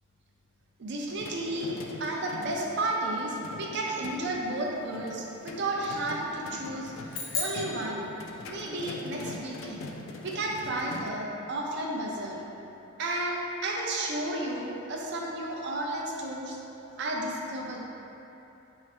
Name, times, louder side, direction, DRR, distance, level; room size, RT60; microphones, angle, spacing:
voice 1, 0.8-6.9 7.4-8.1 8.4-9.9 10.2-12.4 13.0-16.6 17.0-17.9, right 1 dB, 55° right, -1 dB, 0.5 m, -32 dB
sound 1, 1.0-11.1, left 3 dB, 65° left, 0.3 m, -43 dB
sound 2, 7.1-8.8, left 4 dB, 90° left, 0.7 m, -36 dB
4.7 x 2.0 x 4.2 m, 3.0 s
head